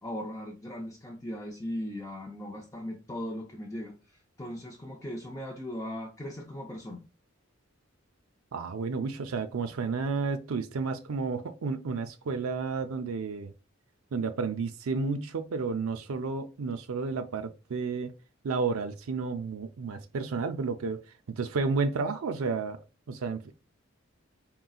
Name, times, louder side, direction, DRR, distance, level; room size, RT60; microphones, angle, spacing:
voice 1, 0.0-3.9 4.4-7.0, equal, 15° left, 0.5 m, -38 dB
voice 2, 8.5-13.5 14.1-18.1 18.4-21.0 21.3-22.8 23.1-23.5, right 4 dB, 85° right, 0.5 m, -31 dB
4.0 x 3.8 x 2.3 m
head